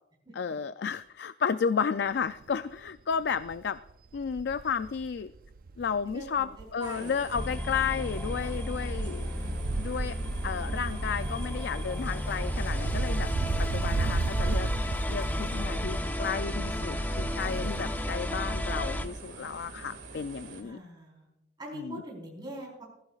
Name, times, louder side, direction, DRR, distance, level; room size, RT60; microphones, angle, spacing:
voice 1, 0.4-3.8 4.1-5.3 5.8-9.3 9.8-10.2 10.4-13.3 13.6-20.8 21.7-22.0, left 6 dB, 65° left, 12 dB, 0.4 m, -32 dB
Wind, 2.2-2.5 2.9-3.0 3.2-6.8 7.1-19.3 19.5-19.6, right 3 dB, 50° right, 0.4 m, -36 dB
voice 2, 6.0-6.5 6.7-7.2 8.9-9.7 20.6-21.3 21.6-22.8, right 1 dB, 25° right, -3 dB, 4.2 m, -43 dB
sound 1, 6.8-20.6, right 3 dB, 85° right, 2.0 m, -46 dB
sound 2, 7.3-19.1, left 1 dB, 10° left, 0.7 m, -33 dB
21.0 x 15.5 x 2.4 m, 0.87 s
head